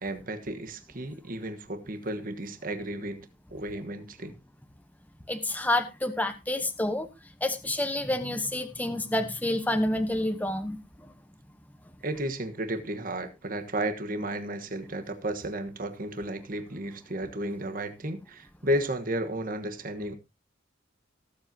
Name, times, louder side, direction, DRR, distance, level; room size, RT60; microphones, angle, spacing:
voice 1, 0.0-3.3 3.5-4.3 12.0-20.2, right 1 dB, 45° right, 1.3 m, -33 dB
voice 2, 5.3-7.1 7.4-10.8, left 1 dB, 10° left, 1.0 m, -28 dB
18.5 x 7.6 x 2.8 m
head